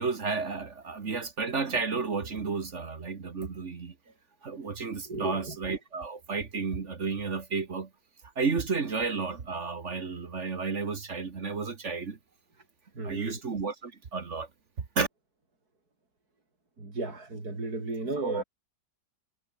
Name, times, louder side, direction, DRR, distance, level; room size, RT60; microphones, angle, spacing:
voice 1, 0.0-3.9 4.4-7.9 8.4-12.2 13.0-14.5 15.0-15.1 18.2-18.4, right 4 dB, 45° right, 1.8 m, -32 dB
voice 2, 5.1-5.6 12.9-13.4 16.8-18.4, right 2 dB, 60° right, 5.7 m, -35 dB
omnidirectional pair, 1.9 m